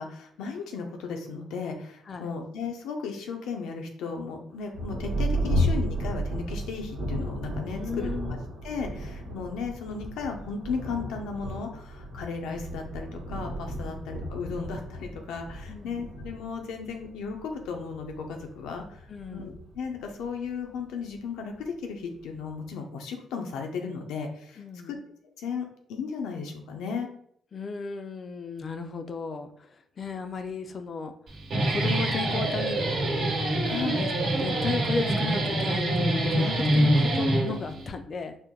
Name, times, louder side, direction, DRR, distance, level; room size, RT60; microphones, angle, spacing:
voice 1, 0.0-8.1 8.6-25.0 25.4-27.1 33.6-34.1, left 5 dB, 90° left, 3 dB, 0.6 m, -35 dB
Thunder, 4.7-20.8 21.6-21.7 22.2-22.6, equal, 85° right, 1.1 m, -33 dB
voice 2, 7.7-8.4 13.8-14.0 15.7-16.0 19.1-19.5 24.6-24.9 27.5-29.7 30.0-31.1 31.5-33.2 34.0-38.4, left 4 dB, 45° left, 8 dB, 0.4 m, -35 dB
Guitar, 31.3-37.9, right 1 dB, 55° right, 1.0 m, -25 dB
4.4 x 2.1 x 3.7 m, 0.66 s
cardioid pair, 90°, 0 cm